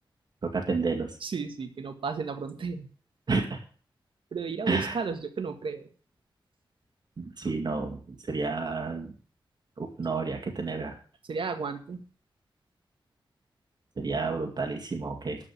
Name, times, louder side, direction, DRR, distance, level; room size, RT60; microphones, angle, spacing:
voice 1, 0.4-1.2 3.3-3.6 4.7-5.0 7.2-9.1 9.8-11.0 14.0-15.4, right 4 dB, 55° right, 2 dB, 2.2 m, -30 dB
voice 2, 1.2-2.9 4.3-5.9 11.3-12.0, right 5 dB, 85° right, 7 dB, 1.7 m, -33 dB
12.5 x 5.4 x 8.8 m, 0.41 s
wide cardioid pair, 120°, 9 cm